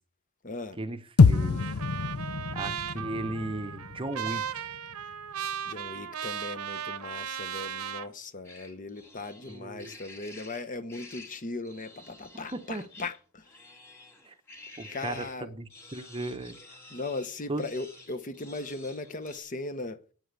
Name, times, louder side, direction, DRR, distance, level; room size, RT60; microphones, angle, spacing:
voice 1, 0.4-0.8 5.6-13.6 14.9-15.5 16.9-20.0, left 3 dB, 35° left, 0.9 m, -38 dB
sound 1, 1.2-5.5, left 4 dB, 75° left, 0.6 m, -26 dB
voice 2, 1.3-1.8 2.5-4.4 9.5-10.0 12.5-12.8 14.2-14.3 14.8-16.6 17.5-17.7, right 2 dB, 25° right, 0.7 m, -36 dB
Trumpet, 1.3-8.1, right 8 dB, 85° right, 0.9 m, -37 dB
sound 2, 8.4-15.4 15.7-19.4, left 2 dB, 10° left, 2.8 m, -50 dB
9.0 x 8.4 x 8.2 m
head